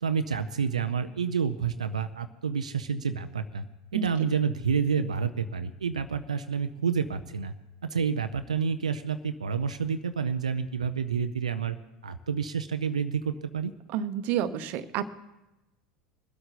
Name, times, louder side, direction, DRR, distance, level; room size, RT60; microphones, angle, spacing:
voice 1, 0.0-3.6 3.9-7.5 7.9-11.8 12.0-13.7, right 6 dB, 90° right, 10 dB, 0.5 m, -29 dB
voice 2, 13.9-15.1, right 9 dB, 55° right, 13 dB, 0.9 m, -29 dB
23.5 x 8.0 x 4.1 m, 0.98 s
hypercardioid pair, 85°, 4 cm